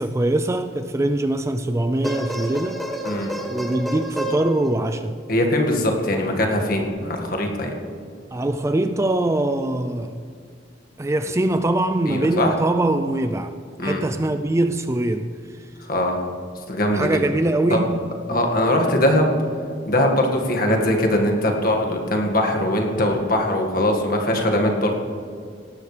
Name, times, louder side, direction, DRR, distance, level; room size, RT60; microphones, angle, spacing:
voice 1, 0.0-2.8 3.5-5.2 8.3-10.2 11.0-13.5 13.8-15.3 16.9-18.5, right 1 dB, 15° right, 0.3 m, -23 dB
sound 1, 1.8-5.3 6.8-6.9, equal, ahead, 0.9 m, -30 dB
voice 2, 5.3-7.7 12.1-12.6 13.8-14.0 15.9-16.2 16.7-17.2 17.7-17.8 18.3-19.3 19.9-25.0, left 1 dB, 50° left, 1.9 m, -21 dB
18.0 x 12.5 x 3.3 m
head